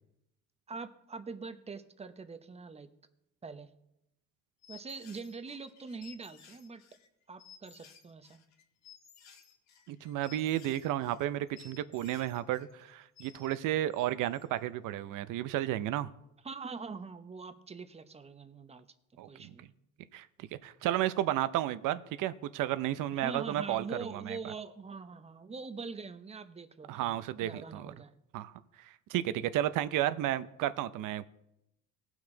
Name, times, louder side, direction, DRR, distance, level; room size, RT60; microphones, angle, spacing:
voice 1, 0.7-2.9 3.4-3.7 4.7-6.8 7.3-8.4 16.4-18.9 19.2-19.7 23.1-27.2 27.4-28.1 29.3-29.4, right 4 dB, 20° right, 10 dB, 0.8 m, -43 dB
sound 1, 4.6-13.6 13.9-14.7, left 7 dB, 55° left, 1.5 m, -57 dB
voice 2, 9.9-16.1 19.2-19.3 20.1-23.9 24.3-24.5 26.9-27.9 28.3-28.5 28.8-31.3, right 13 dB, 70° right, 14 dB, 0.7 m, -32 dB
18.5 x 6.2 x 3.8 m, 0.83 s
cardioid pair, 110°, 33 cm